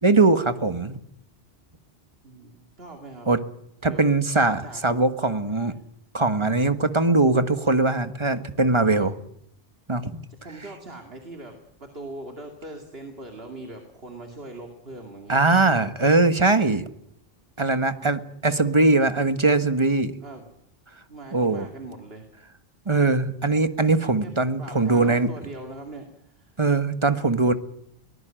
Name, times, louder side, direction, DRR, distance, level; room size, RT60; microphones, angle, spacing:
voice 1, 0.0-1.0 3.3-3.4 3.8-5.7 6.1-9.1 9.9-10.2 15.3-16.9 17.6-20.1 21.3-21.7 22.8-25.3 26.6-27.5, right 3 dB, 30° right, 10 dB, 1.4 m, -21 dB
voice 2, 2.2-3.3 3.8-4.0 4.6-4.8 8.9-9.1 10.3-15.6 20.2-20.4 21.1-22.2 24.2-24.3 24.6-26.6, right 2 dB, 70° right, 3 dB, 2.8 m, -41 dB
22.5 x 19.0 x 9.0 m, 0.75 s
omnidirectional pair, 1.0 m